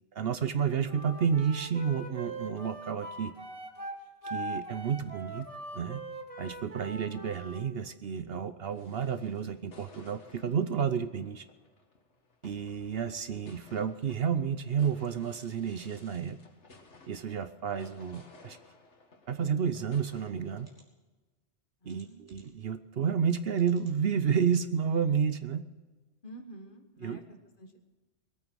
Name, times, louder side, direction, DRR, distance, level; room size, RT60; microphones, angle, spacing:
voice 1, 0.1-3.3 4.3-5.5 5.7-6.0 6.4-11.4 12.4-16.4 17.1-18.6 19.3-20.7 21.8-25.7 27.0-27.2, right 7 dB, 60° right, 10 dB, 0.9 m, -31 dB
Wind instrument woodwind instrument, 0.9-7.6, right 1 dB, 30° right, 1.6 m, -41 dB
sound 1, 8.6-20.8, left 3 dB, 75° left, 2.0 m, -57 dB
sound 2, 20.6-20.9 21.9-22.6 23.5-24.0 24.6-24.7 25.0-25.1, right 1 dB, 10° right, 3.5 m, -63 dB
voice 2, 21.8-22.3 26.2-27.8, right 1 dB, 45° left, 5 dB, 1.7 m, -49 dB
21.0 x 9.1 x 6.2 m, 1.2 s
omnidirectional pair, 1.2 m